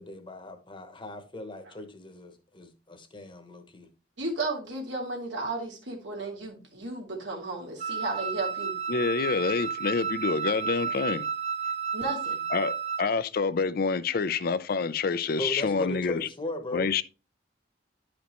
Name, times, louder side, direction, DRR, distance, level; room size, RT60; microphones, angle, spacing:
voice 1, 0.0-3.9 15.4-17.0, left 1 dB, 30° left, 1.0 m, -38 dB
voice 2, 4.2-8.8 11.9-12.5, right 2 dB, 90° right, 2.5 m, -34 dB
Wind instrument woodwind instrument, 7.8-13.1, right 6 dB, 40° right, 0.6 m, -32 dB
voice 3, 8.9-11.3 12.5-16.2 16.7-17.0, left 5 dB, 55° left, 0.5 m, -27 dB
11.0 x 5.1 x 3.0 m
head